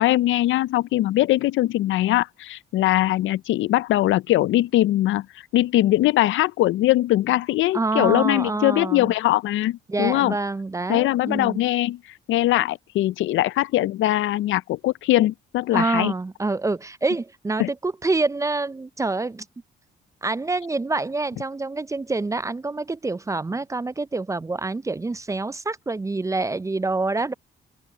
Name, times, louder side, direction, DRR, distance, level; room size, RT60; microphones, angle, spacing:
voice 1, 0.0-5.3 5.5-10.4 10.9-12.0 12.3-16.1 17.6-17.7, left 15 dB, 75° left, 0.5 m, -21 dB
voice 2, 7.7-9.1 9.9-11.6 15.7-19.5 20.2-27.3, right 3 dB, 15° right, 0.4 m, -26 dB
open air
cardioid pair, 90°, 20 cm